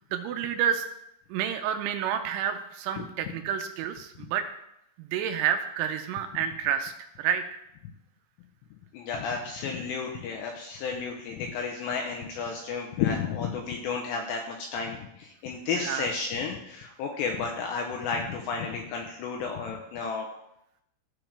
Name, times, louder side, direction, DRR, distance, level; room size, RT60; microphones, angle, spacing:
voice 1, 0.1-0.8 1.3-4.5 5.0-7.6 15.7-16.1, right 9 dB, 85° right, 7 dB, 2.9 m, -29 dB
voice 2, 8.9-20.3, left 5 dB, 85° left, 1 dB, 2.5 m, -32 dB
15.0 x 5.1 x 3.3 m, 0.81 s
omnidirectional pair, 5.7 m